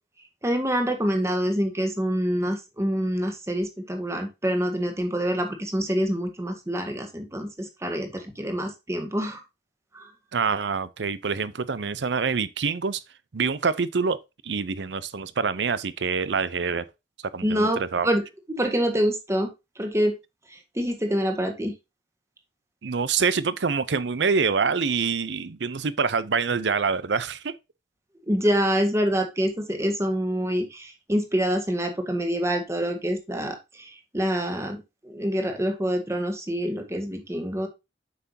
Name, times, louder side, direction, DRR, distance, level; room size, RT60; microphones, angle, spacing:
voice 1, 0.4-9.4 9.9-10.1 17.4-18.2 18.5-19.5 19.8-20.1 20.5-21.7 28.3-34.8 35.0-37.7, equal, 15° right, 1.6 m, -26 dB
voice 2, 10.3-13.0 13.3-14.2 14.4-16.9 17.3-18.1 22.8-27.5, right 5 dB, 75° right, 0.6 m, -26 dB
7.9 x 5.8 x 2.8 m
head